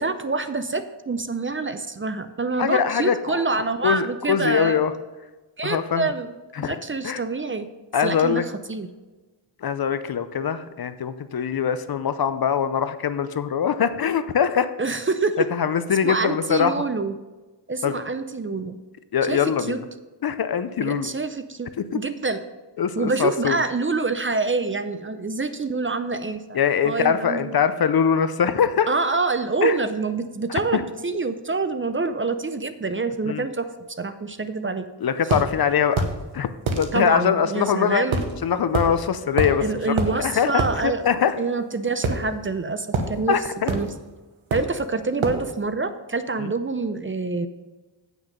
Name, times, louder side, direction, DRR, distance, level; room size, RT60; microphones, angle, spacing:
voice 1, 0.0-4.8 5.6-6.3 6.6-7.7 8.0-8.9 14.8-15.5 16.0-17.2 17.7-18.8 19.3-19.8 20.8-22.4 23.0-26.6 26.8-27.6 28.9-33.7 34.0-34.9 36.9-38.2 39.6-41.1 41.4-43.4 43.7-43.9 44.5-47.5, right 3 dB, 25° right, 10 dB, 0.6 m, -26 dB
voice 2, 2.6-3.4 3.8-4.9 5.6-6.1 6.6-6.8 7.0-7.2 7.9-8.4 9.6-14.7 15.5-16.8 17.8-18.0 19.1-19.8 20.2-21.1 22.8-23.6 26.5-28.9 29.6-29.8 30.7-30.8 33.3-33.4 35.0-36.1 36.3-36.5 36.8-38.0 38.4-41.4 43.3-43.7 46.4-46.5, left 7 dB, 50° left, 12 dB, 0.6 m, -22 dB
sound 1, 35.3-35.5 36.0-36.2 36.7-36.9 38.1-38.3 38.7-38.9 39.4-39.6 40.0-40.1 40.6-40.7 42.0-42.6 42.9-43.1 43.7-43.9 44.5-44.8 45.2-45.4, right 3 dB, 85° right, 1.3 m, -24 dB
8.7 x 6.2 x 5.2 m, 1.2 s
cardioid pair, 80°, 47 cm